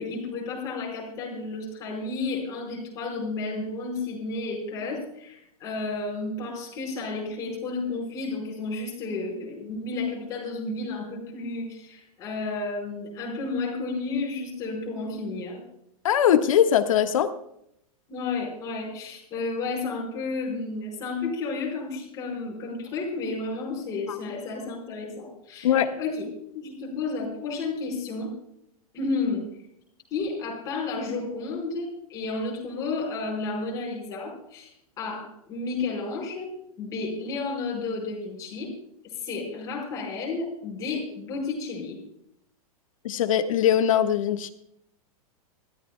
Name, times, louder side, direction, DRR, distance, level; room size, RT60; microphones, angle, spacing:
voice 1, 0.0-15.6 18.1-26.3 26.5-28.3 28.9-29.5 30.1-34.7 35.0-36.5 36.8-38.7 39.1-42.0, left 3 dB, 15° left, -2 dB, 4.7 m, -32 dB
voice 2, 16.0-17.3 24.1-24.2 25.6-25.9 43.0-44.5, left 10 dB, 60° left, 7 dB, 1.4 m, -21 dB
25.5 x 14.0 x 2.2 m, 0.75 s
supercardioid pair, 180°, 19 cm